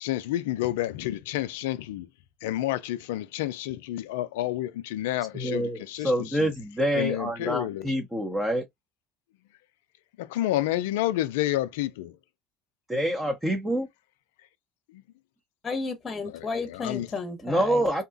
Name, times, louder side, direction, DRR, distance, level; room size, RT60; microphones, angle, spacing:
voice 1, 0.0-2.1 2.4-6.1 6.4-6.5 6.9-7.9 10.2-12.1 14.9-15.0 16.3-17.1, left 14 dB, 85° left, 0.3 m, -29 dB
voice 2, 5.3-8.6 12.9-13.9 17.4-18.0, equal, 15° right, 0.9 m, -26 dB
voice 3, 15.6-18.0, left 4 dB, 30° left, 0.9 m, -33 dB
2.8 x 2.3 x 2.4 m
hypercardioid pair, 70°, 0 cm